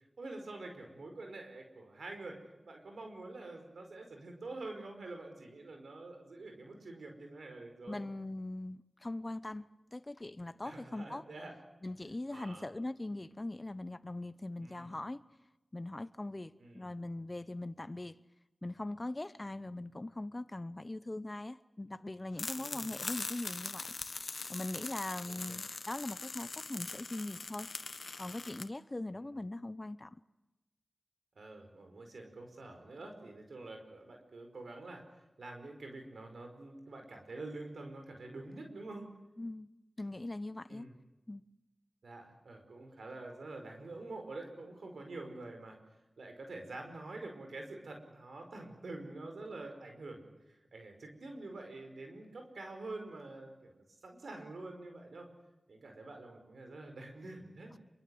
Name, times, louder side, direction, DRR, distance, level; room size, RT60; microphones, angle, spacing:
voice 1, 0.2-2.4 2.6-8.0 10.6-11.5 12.3-12.7 14.6-14.9 16.6-16.9 22.5-22.9 25.3-25.6 31.3-35.0 35.4-39.1 40.7-40.9 42.0-45.8 46.2-50.3 50.7-53.7 54.0-55.3 55.7-57.7, right 2 dB, 85° right, 5.1 m, -47 dB
voice 2, 7.9-11.2 11.8-15.2 15.7-18.2 18.6-23.9 24.5-27.7 28.2-30.2 39.4-39.7 40.0-40.9 41.3-41.4, left 2 dB, 35° left, 0.9 m, -41 dB
sound 1, 22.4-28.6, left 3 dB, 70° left, 1.5 m, -42 dB
26.0 x 23.5 x 7.9 m
cardioid pair, 40°, 0 cm